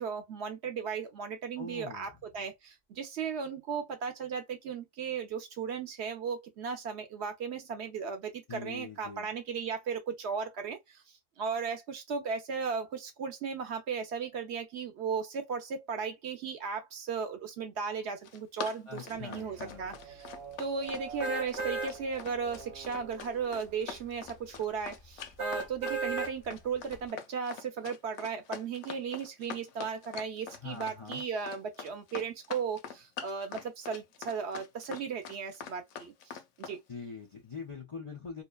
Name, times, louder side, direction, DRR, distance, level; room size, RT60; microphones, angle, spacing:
voice 1, 0.0-11.0 11.4-20.3 20.6-36.8, right 6 dB, 60° right, 0.8 m, -36 dB
voice 2, 1.6-2.1 8.5-9.3 18.9-19.9 30.6-31.2 36.9-38.4, left 5 dB, 55° left, 0.3 m, -43 dB
Run, 18.0-36.8, left 7 dB, 85° left, 1.0 m, -44 dB
sound 1, 19.1-24.6, right 7 dB, 85° right, 1.0 m, -48 dB
sound 2, 21.2-21.9 22.5-22.6 25.4-26.3 26.9-27.0, right 4 dB, 25° right, 0.8 m, -33 dB
2.8 x 2.2 x 2.3 m
omnidirectional pair, 1.4 m